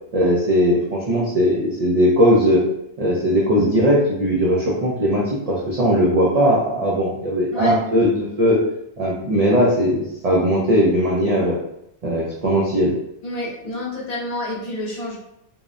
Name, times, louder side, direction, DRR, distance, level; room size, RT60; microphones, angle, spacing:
voice 1, 0.1-2.6 3.0-8.6 9.0-11.6 12.0-12.9, equal, 60° right, -5 dB, 0.4 m, -18 dB
voice 2, 13.2-15.2, left 1 dB, 45° left, -5 dB, 0.6 m, -29 dB
2.7 x 2.0 x 2.4 m, 0.79 s
omnidirectional pair, 1.2 m